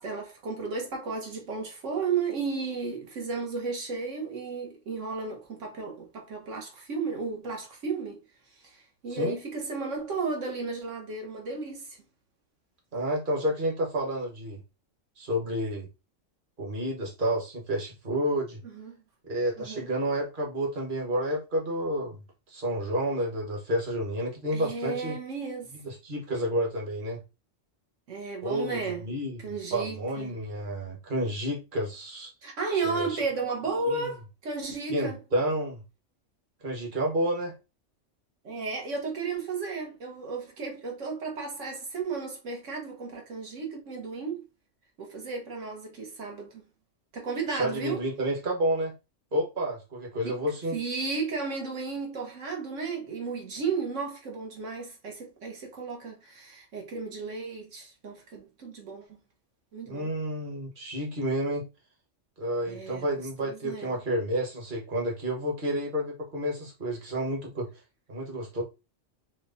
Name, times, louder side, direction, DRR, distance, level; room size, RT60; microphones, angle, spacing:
voice 1, 0.0-8.2 8.6-12.0 18.6-18.9 19.6-19.9 24.5-25.7 28.1-29.0 29.4-30.4 32.4-35.2 38.4-44.4 45.0-46.6 47.1-48.1 50.2-50.4 50.7-59.2 59.7-60.1 62.7-63.1 63.4-63.9, right 4 dB, 75° right, 1.3 m, -34 dB
voice 2, 12.9-14.6 15.2-15.9 16.6-18.6 19.3-22.2 22.5-25.2 25.7-27.2 28.4-29.4 29.7-32.3 32.8-33.2 33.9-34.1 34.9-35.8 36.6-37.6 47.5-48.9 49.3-50.8 59.9-61.7 62.4-67.7 68.1-68.6, right 1 dB, 45° right, 1.4 m, -30 dB
4.4 x 2.2 x 3.9 m
omnidirectional pair, 1.3 m